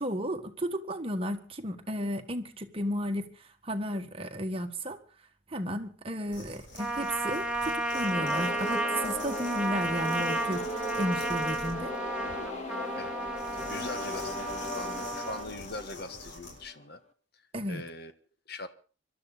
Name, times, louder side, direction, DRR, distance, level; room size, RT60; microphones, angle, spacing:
voice 1, 0.0-3.3 3.6-5.0 5.5-10.6 10.9-11.9 17.5-17.8, equal, 30° right, 1.6 m, -33 dB
sound 1, 6.3-16.6, left 2 dB, 80° left, 7.1 m, -48 dB
Trumpet, 6.8-15.5, right 1 dB, 5° right, 1.4 m, -33 dB
sound 2, 7.9-16.8, left 1 dB, 40° left, 1.8 m, -38 dB
voice 2, 13.5-17.0 17.7-18.1 18.5-18.7, left 2 dB, 55° left, 1.5 m, -41 dB
25.5 x 12.5 x 4.1 m
head